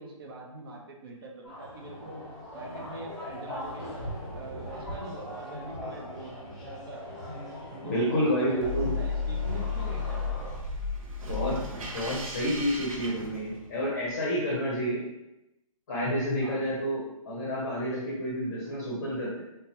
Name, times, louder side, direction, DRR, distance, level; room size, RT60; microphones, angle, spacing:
voice 1, 0.0-2.2 2.5-3.9 4.3-6.3 6.8-7.2 7.8-10.5 14.9-15.1 16.4-16.7, right 2 dB, 40° right, 0 dB, 0.7 m, -43 dB
sound 1, 1.4-10.5, equal, ahead, 0.9 m, -40 dB
voice 2, 7.9-8.9 11.3-11.6 11.9-15.0 15.9-19.4, equal, 30° left, -5 dB, 0.7 m, -29 dB
sound 2, 8.6-13.9, left 4 dB, 70° right, 0.8 m, -33 dB
3.4 x 2.9 x 2.9 m, 0.89 s
hypercardioid pair, 160°, 19 cm